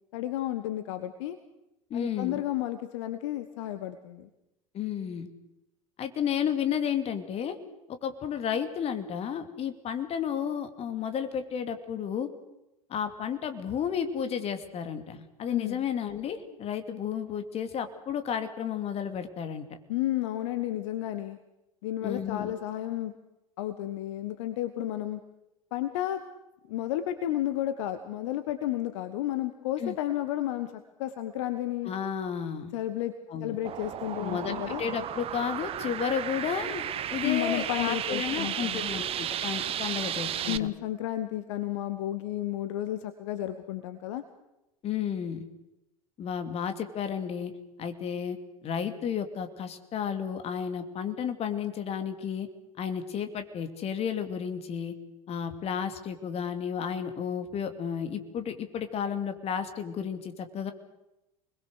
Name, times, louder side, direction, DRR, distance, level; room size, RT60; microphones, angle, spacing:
voice 1, 0.1-1.4 1.9-4.3 15.5-15.8 19.9-21.4 21.8-23.1 23.6-25.2 25.7-26.2 26.7-30.7 31.0-31.9 32.7-33.1 33.4-34.8 37.2-38.9 40.5-44.2, left 13 dB, 55° left, 10 dB, 1.4 m, -32 dB
voice 2, 1.9-2.4 4.7-5.3 6.0-7.6 7.9-12.3 12.9-19.7 22.0-22.5 29.8-29.9 31.8-32.7 33.3-33.6 34.1-40.7 44.8-45.5 46.2-48.4 48.6-52.5 52.8-54.9 55.3-60.7, left 8 dB, 35° left, 8 dB, 2.8 m, -32 dB
sound 1, 33.6-40.6, right 10 dB, 30° right, 1.0 m, -33 dB
28.5 x 21.5 x 6.7 m, 0.92 s
figure-of-eight pair, 75°, 18 cm